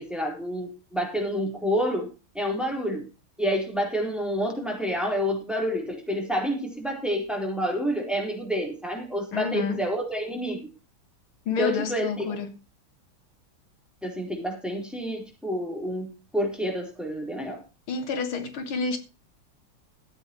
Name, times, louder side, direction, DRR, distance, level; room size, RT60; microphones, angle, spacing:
voice 1, 0.0-2.1 2.3-3.1 3.4-10.7 11.6-12.4 14.0-17.6, equal, ahead, 3.8 m, -28 dB
voice 2, 9.3-9.8 11.5-12.5 17.9-19.0, left 5 dB, 75° left, 2.2 m, -29 dB
15.0 x 8.3 x 4.6 m
omnidirectional pair, 2.3 m